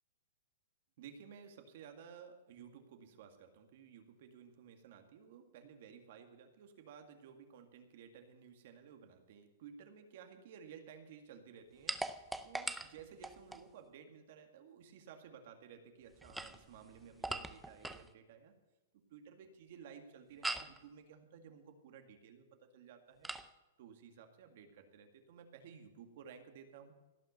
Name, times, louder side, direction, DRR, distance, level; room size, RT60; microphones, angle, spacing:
voice 1, 1.0-18.5 18.9-23.3 23.8-26.9, right 7 dB, 50° right, 7 dB, 1.9 m, -55 dB
sound 1, 11.9-13.7 16.1-18.1 20.4-20.8 23.2-23.5, right 2 dB, 5° right, 0.5 m, -41 dB
17.0 x 5.9 x 9.3 m, 1.1 s
hypercardioid pair, 165°, 0 cm